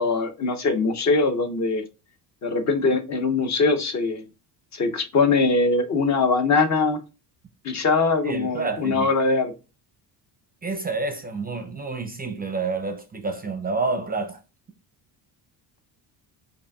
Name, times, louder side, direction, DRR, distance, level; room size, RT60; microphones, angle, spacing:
voice 1, 0.0-1.8 2.4-4.2 4.7-7.0 7.6-9.5, left 3 dB, 40° left, 0.7 m, -22 dB
voice 2, 8.2-9.1 10.6-14.4, right 3 dB, 20° right, 0.5 m, -29 dB
4.9 x 2.6 x 2.3 m
cardioid pair, 100°, 44 cm